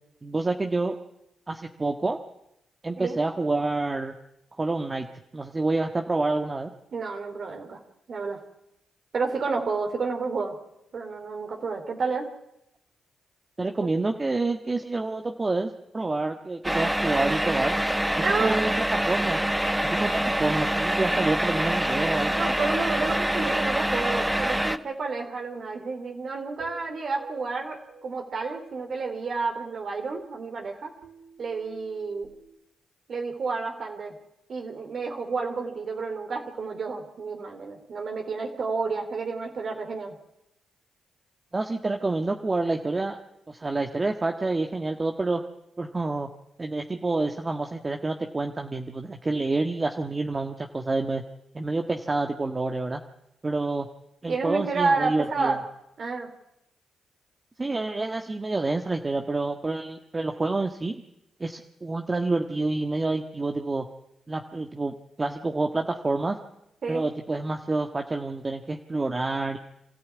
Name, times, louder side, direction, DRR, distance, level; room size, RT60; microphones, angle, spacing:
voice 1, 0.2-0.9 1.5-2.2 2.8-4.1 4.6-5.1 5.3-6.7 13.6-17.8 18.2-19.4 19.8-22.4 41.5-43.2 43.5-45.4 45.8-46.3 46.6-51.2 51.5-53.0 53.4-53.9 54.2-55.6 57.6-61.0 61.4-63.9 64.3-66.4 66.9-69.6, right 3 dB, 30° right, 4 dB, 1.7 m, -28 dB
voice 2, 6.9-7.8 8.1-8.4 9.1-10.5 10.9-12.3 18.2-18.6 22.2-30.9 31.4-32.3 33.1-34.1 34.5-40.2 54.3-55.6 56.0-56.3 66.8-67.0, right 4 dB, 60° right, 3 dB, 3.4 m, -30 dB
sound 1, 16.6-24.8, right 1 dB, 5° right, 1.4 m, -25 dB
sound 2, 26.6-28.8 31.0-32.6, right 3 dB, 90° right, 2.2 m, -49 dB
26.5 x 13.5 x 9.6 m, 0.85 s
supercardioid pair, 50°, 0 cm